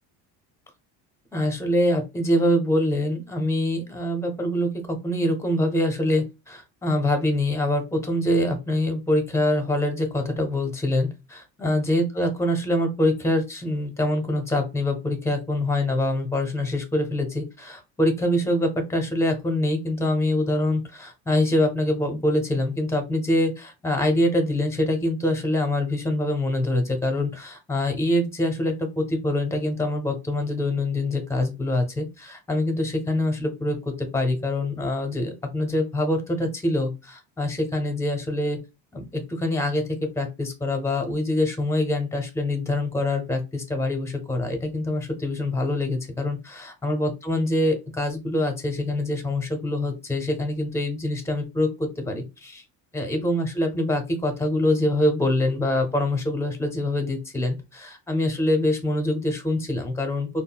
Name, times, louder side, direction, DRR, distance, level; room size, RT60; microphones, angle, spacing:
voice 1, 1.3-38.6 38.9-39.8 40.2-52.6 52.9-60.3, left 1 dB, 5° left, 4 dB, 0.7 m, -25 dB
3.7 x 2.1 x 2.3 m, 0.26 s
cardioid pair, 120°, 40 cm